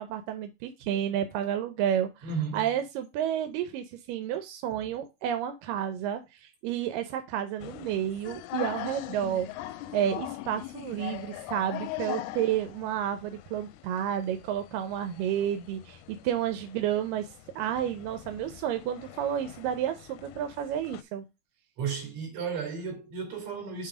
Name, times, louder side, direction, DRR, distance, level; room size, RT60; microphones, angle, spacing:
voice 1, 0.0-2.3 2.5-9.5 9.9-17.3 17.6-21.2, right 10 dB, 90° right, 2.4 m, -31 dB
voice 2, 2.2-2.7 21.8-23.9, right 6 dB, 60° right, 3.6 m, -33 dB
sound 1, 7.6-21.0, left 15 dB, 80° left, 1.8 m, -42 dB
7.0 x 3.3 x 4.8 m
omnidirectional pair, 3.8 m